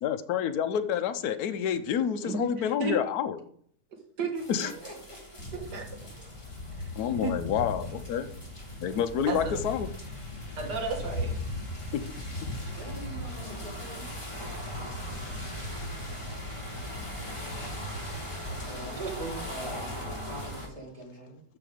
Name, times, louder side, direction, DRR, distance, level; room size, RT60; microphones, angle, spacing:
voice 1, 0.0-3.4 4.5-4.7 7.0-8.3 8.8-9.9 11.9-12.0, left 8 dB, 70° left, 8 dB, 1.2 m, -28 dB
voice 2, 2.2-3.0 4.2-4.4 5.7-5.8 7.1-7.3 9.3-9.6 10.6-11.3 19.0-19.4, right 3 dB, 75° right, 2 dB, 2.4 m, -32 dB
sound 1, 4.3-20.7, equal, 15° left, 3.5 m, -41 dB
voice 3, 4.6-5.6 8.2-8.4 12.7-14.1 18.5-19.0 19.5-21.4, right 1 dB, 20° right, -2 dB, 3.5 m, -44 dB
sound 2, 5.4-19.9, left 1 dB, 50° left, 2.7 m, -39 dB
13.0 x 4.8 x 5.0 m, 0.62 s
omnidirectional pair, 1.8 m